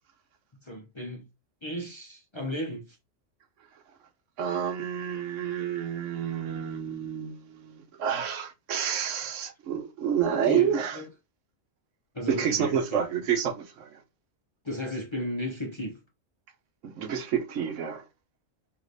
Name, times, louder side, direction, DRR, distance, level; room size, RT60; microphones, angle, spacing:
voice 1, 0.6-1.2 1.6-3.0 10.3-11.1 12.1-13.1 14.6-16.0, left 1 dB, 30° left, 0.6 m, -34 dB
voice 2, 4.4-11.0 12.3-14.0 16.8-18.0, right 8 dB, 75° right, 1.1 m, -29 dB
4.8 x 3.0 x 2.6 m
omnidirectional pair, 1.3 m